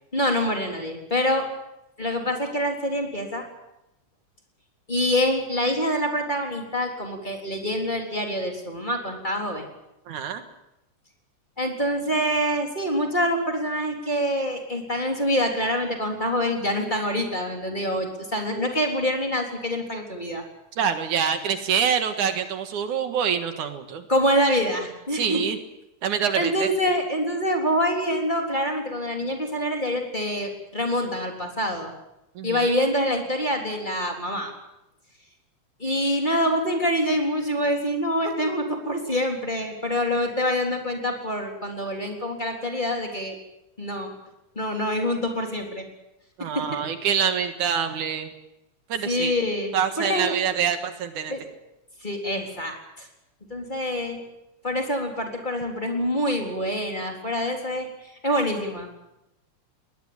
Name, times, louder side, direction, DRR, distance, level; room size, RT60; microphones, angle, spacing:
voice 1, 0.1-1.5 2.0-3.4 4.9-9.6 11.6-20.4 24.1-25.4 26.4-31.9 32.4-34.5 35.8-43.4 43.8-44.1 44.6-45.8 46.4-46.7 49.0-49.7 50.0-50.4 51.3-51.4 52.0-53.1 53.5-54.2 54.6-57.9 58.2-59.1, equal, 15° left, 2 dB, 3.6 m, -26 dB
voice 2, 10.1-10.4 20.8-24.0 25.1-25.6 26.0-26.7 32.4-32.8 46.4-48.3 48.9-49.3 49.7-51.3, right 7 dB, 75° right, 8 dB, 3.0 m, -25 dB
21.0 x 20.0 x 8.9 m, 0.89 s
omnidirectional pair, 3.6 m